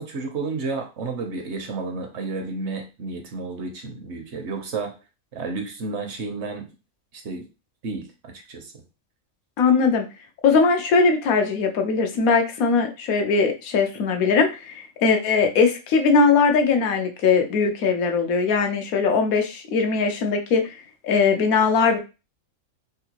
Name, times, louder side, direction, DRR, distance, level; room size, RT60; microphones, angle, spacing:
voice 1, 0.0-4.9 5.3-6.7 7.2-7.5 7.8-8.7, right 3 dB, 60° right, 4 dB, 0.9 m, -31 dB
voice 2, 9.6-10.1 10.4-20.7 21.0-22.0, left 5 dB, 90° left, 5 dB, 1.1 m, -20 dB
3.7 x 2.4 x 2.9 m, 0.30 s
omnidirectional pair, 1.4 m